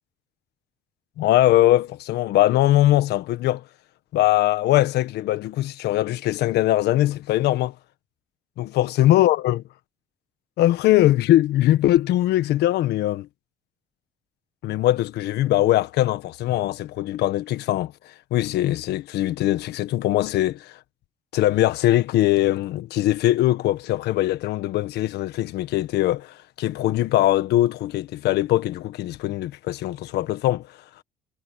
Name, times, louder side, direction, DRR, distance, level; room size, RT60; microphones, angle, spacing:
voice 1, 1.2-3.6 4.1-7.7 8.6-9.6 10.6-13.3 14.6-17.9 18.3-20.8 21.3-30.7, left 14 dB, 80° left, 1.5 m, -21 dB
cardioid pair, 110°, 17 cm